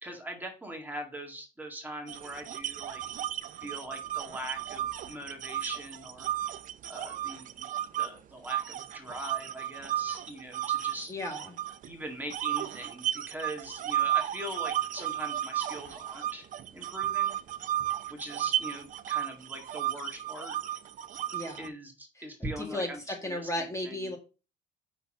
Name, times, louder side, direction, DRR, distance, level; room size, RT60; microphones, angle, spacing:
voice 1, 0.0-3.0 3.6-6.3 6.9-7.7 8.0-11.1 11.9-16.5 16.7-17.4 18.1-20.6 21.6-24.1, right 1 dB, 10° right, 2 dB, 1.9 m, -41 dB
sound 1, 2.1-8.1 8.5-11.9 12.3-21.7, right 12 dB, 50° right, 0.6 m, -33 dB
voice 2, 11.1-11.5 21.3-21.7 22.2-22.3 22.6-24.2, left 1 dB, 15° left, 2 dB, 1.7 m, -35 dB
5.9 x 4.0 x 6.3 m, 0.32 s
cardioid pair, 110°, 17 cm